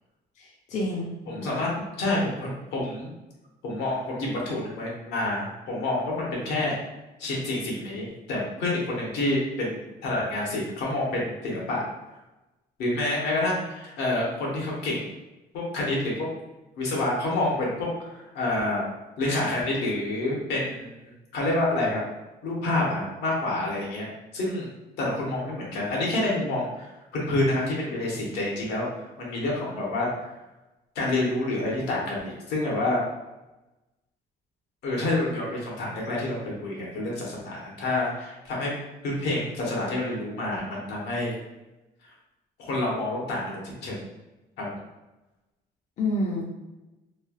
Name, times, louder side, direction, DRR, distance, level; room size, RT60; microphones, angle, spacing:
voice 1, 0.4-1.5 2.0-2.2 46.0-46.4, left 1 dB, 45° left, -2 dB, 0.5 m, -29 dB
voice 2, 1.3-1.7 2.0-3.1 3.6-6.8 7.2-11.8 12.8-15.1 15.5-16.3 16.8-18.9 19.2-22.0 22.4-24.1 24.3-24.7 25.0-26.9 27.1-28.9 29.2-30.1 30.9-33.0 34.8-38.7 39.0-41.4 42.6-44.0 44.6-44.8, left 2 dB, 80° left, -4 dB, 1.0 m, -28 dB
3.2 x 2.2 x 2.2 m, 1.0 s
cardioid pair, 110°, 17 cm